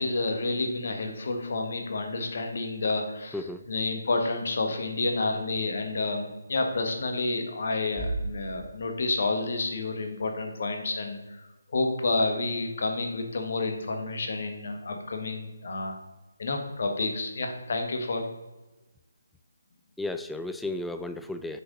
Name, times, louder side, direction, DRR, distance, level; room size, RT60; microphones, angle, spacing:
voice 1, 0.0-3.4 3.7-11.4 11.7-16.0 16.4-18.2, left 3 dB, 55° left, 4 dB, 1.4 m, -29 dB
voice 2, 3.3-3.6 20.0-21.6, left 2 dB, 5° left, 8 dB, 0.3 m, -34 dB
Bass drum, 8.0-9.6, right 2 dB, 30° left, 1.9 m, -36 dB
7.6 x 6.4 x 3.8 m, 1.1 s
figure-of-eight pair, 145°, 0 cm